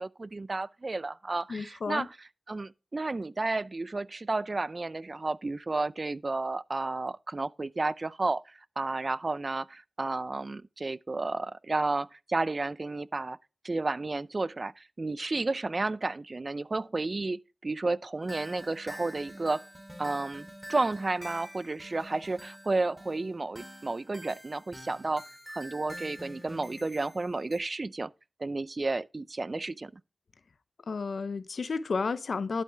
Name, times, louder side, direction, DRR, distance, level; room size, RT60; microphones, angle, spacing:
voice 1, 0.0-2.1 2.5-13.4 13.6-19.6 20.0-25.2 25.5-28.1 28.4-29.9, right 3 dB, 50° right, 0.5 m, -32 dB
voice 2, 1.5-2.1 30.9-32.6, left 4 dB, 80° left, 0.7 m, -32 dB
sound 1, 18.2-27.6, equal, ahead, 3.0 m, -46 dB
11.5 x 6.7 x 3.4 m
cardioid pair, 45°, 0 cm